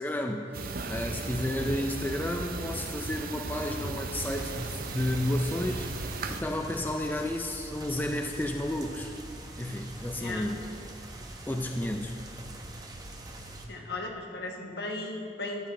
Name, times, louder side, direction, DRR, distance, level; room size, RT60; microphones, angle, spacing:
voice 1, 0.0-5.9 6.3-9.1 9.6-10.6 11.5-12.2, left 1 dB, 10° left, 3 dB, 0.4 m, -32 dB
sound 1, 0.5-6.4, right 3 dB, 55° right, 0.6 m, -36 dB
sound 2, 4.2-13.7, right 1 dB, 20° right, 0.8 m, -43 dB
voice 2, 10.1-10.4 13.7-15.7, left 2 dB, 65° left, 1 dB, 1.2 m, -36 dB
13.0 x 9.7 x 3.3 m, 2.4 s
head